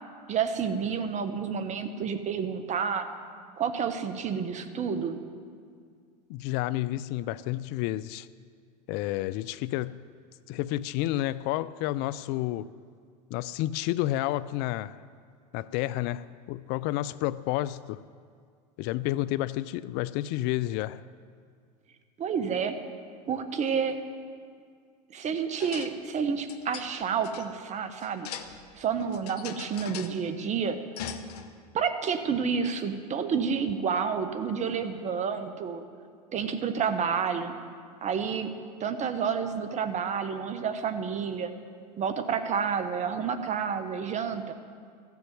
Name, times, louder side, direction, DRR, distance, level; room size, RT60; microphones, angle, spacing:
voice 1, 0.3-3.1 3.6-5.2 22.2-22.8 23.3-24.0 25.1-28.3 28.8-30.8 31.7-35.8 36.3-37.5 38.0-38.5 38.8-41.5 42.0-44.5, right 6 dB, 35° right, 1.2 m, -29 dB
voice 2, 6.3-8.3 8.9-10.0 10.5-12.7 13.3-15.0 15.5-18.0 18.8-21.0, left 15 dB, 55° left, 0.4 m, -30 dB
sound 1, 25.6-26.0 26.3-27.5 28.0-28.7 29.0-30.1 31.0-31.5, left 7 dB, 70° left, 1.0 m, -40 dB
14.5 x 7.1 x 9.4 m
hypercardioid pair, 95°, 21 cm